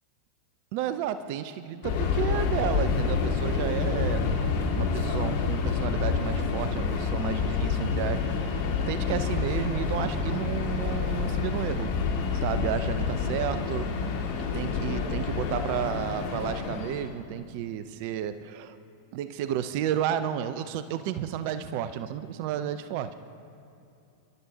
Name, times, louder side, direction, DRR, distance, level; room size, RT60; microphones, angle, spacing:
voice 1, 0.7-11.9 12.3-14.1 14.4-18.8 19.1-23.2, right 10 dB, 45° right, 12 dB, 0.6 m, -32 dB
Subway metro underground, 1.8-17.2, left 5 dB, 50° left, 2.2 m, -28 dB
29.5 x 12.0 x 2.8 m, 2.7 s
figure-of-eight pair, 90°, 0 cm